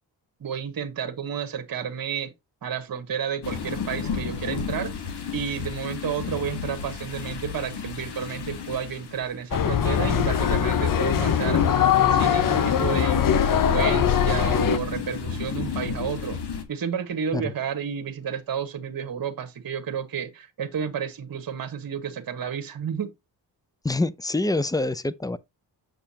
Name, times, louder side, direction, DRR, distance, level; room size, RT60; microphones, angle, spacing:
voice 1, 0.4-2.3 2.6-4.9 5.3-11.6 12.0-16.4 16.7-23.1, right 8 dB, 50° right, 1.3 m, -31 dB
sound 1, 3.4-9.4 9.9-16.6, left 6 dB, 65° left, 1.7 m, -32 dB
sound 2, 9.5-14.8, left 9 dB, 50° left, 0.7 m, -21 dB
voice 2, 23.8-25.4, left 2 dB, 10° left, 0.5 m, -26 dB
6.8 x 6.2 x 2.8 m
cardioid pair, 60°, 43 cm